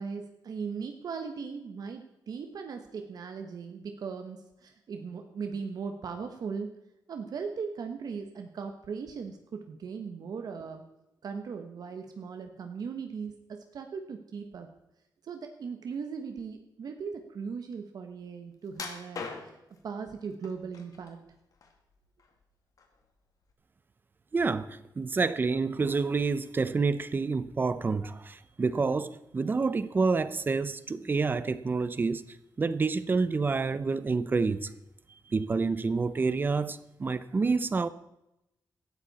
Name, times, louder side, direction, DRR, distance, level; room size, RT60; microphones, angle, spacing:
voice 1, 0.0-6.7 7.1-10.9 11.2-14.7 15.2-19.6 19.8-21.2, right 5 dB, 60° right, 1.3 m, -38 dB
sound 1, 18.7-19.8 20.4-21.1 21.5-22.4 22.8-23.0 23.5-23.6, left 4 dB, 50° left, 2.3 m, -41 dB
voice 2, 24.3-32.2 32.6-34.7 35.3-37.9, right 4 dB, 25° right, 0.7 m, -28 dB
17.5 x 13.0 x 4.2 m
wide cardioid pair, 170°, 7 cm